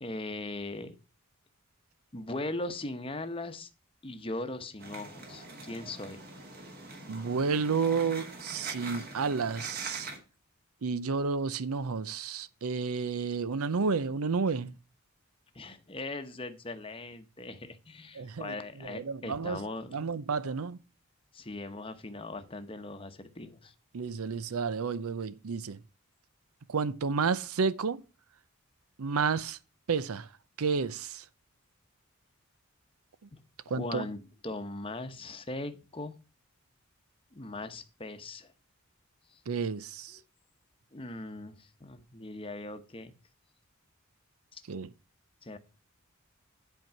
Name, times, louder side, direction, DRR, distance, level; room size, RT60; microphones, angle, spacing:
voice 1, 0.0-1.0 2.1-3.7 4.0-6.2 15.5-20.1 21.3-23.7 33.3-33.4 33.7-36.1 37.3-38.5 39.3-39.4 40.9-43.1 44.5-44.6 45.4-45.6, left 2 dB, 25° left, 0.9 m, -39 dB
sound 1, 4.8-10.2, right 3 dB, 45° right, 2.3 m, -43 dB
voice 2, 7.1-10.1 10.8-14.7 18.1-19.6 19.9-20.8 23.9-25.8 26.7-28.0 29.0-29.6 29.9-30.3 30.6-31.3 33.2-33.3 33.7-34.1 39.5-40.2 44.7-44.9, right 5 dB, 80° right, 0.6 m, -31 dB
10.5 x 4.6 x 5.8 m
head